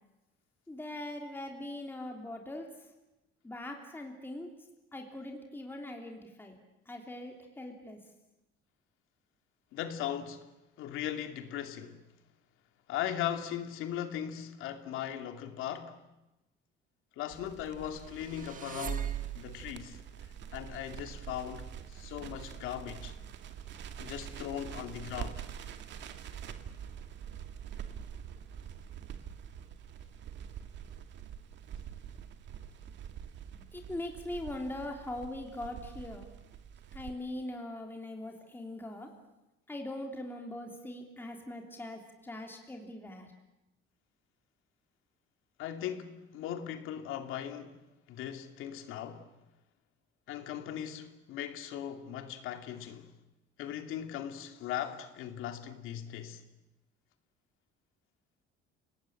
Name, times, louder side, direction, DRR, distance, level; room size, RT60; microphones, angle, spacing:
voice 1, 0.7-2.7 3.4-4.5 4.9-6.5 6.9-8.0 33.7-36.3 36.9-39.1 39.7-43.3, left 1 dB, 10° left, 3.2 m, -41 dB
voice 2, 9.7-10.5 10.8-12.0 12.9-16.0 17.2-20.0 20.5-23.2 24.0-25.5 45.6-47.8 48.1-49.3 50.3-53.1 53.6-56.4, left 10 dB, 80° left, 2.6 m, -38 dB
Crackle, 17.3-37.1, right 8 dB, 60° right, 2.3 m, -45 dB
sound 1, 18.0-19.8, right 9 dB, 40° right, 1.6 m, -38 dB
29.5 x 19.5 x 9.0 m
cardioid pair, 140°, 21 cm